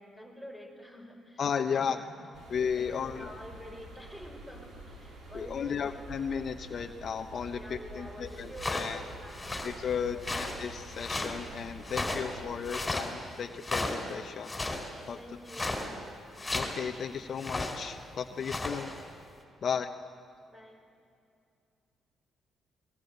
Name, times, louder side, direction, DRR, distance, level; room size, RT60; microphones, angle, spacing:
voice 1, 0.0-2.5 2.8-6.1 7.5-9.5 10.1-10.2 15.2-15.8 19.6-19.8 20.5-20.8, equal, 10° right, 1 dB, 6.3 m, -48 dB
voice 2, 1.4-2.0 2.5-3.3 5.3-9.0 9.6-14.5 15.1-15.2 16.5-18.9 19.6-19.9, left 7 dB, 55° left, 7 dB, 1.0 m, -34 dB
sound 1, 2.3-12.7, right 2 dB, 70° right, 5.5 m, -48 dB
sound 2, 8.6-8.9 9.3-9.8 10.2-11.4 11.8-12.3 12.6-13.1 13.6-14.1 14.4-14.9 15.5-15.9 16.4-16.8 17.4-17.8 18.3-19.0, left 2 dB, 15° left, 4.6 m, -34 dB
27.5 x 21.0 x 8.2 m, 2.4 s
cardioid pair, 90°, 0 cm